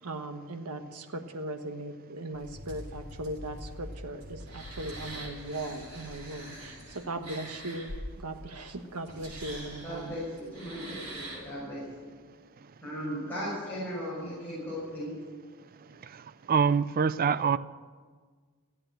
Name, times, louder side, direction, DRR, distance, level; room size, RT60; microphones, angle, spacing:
voice 1, 0.0-10.2, right 2 dB, 85° right, 7 dB, 1.3 m, -38 dB
sound 1, 2.3-11.5, right 1 dB, 65° right, 5.7 m, -44 dB
voice 2, 9.8-12.1 12.8-15.2, equal, 10° left, -9 dB, 6.0 m, -37 dB
voice 3, 16.0-17.6, right 6 dB, 40° right, 16 dB, 0.4 m, -26 dB
15.5 x 8.8 x 9.1 m, 1.5 s
head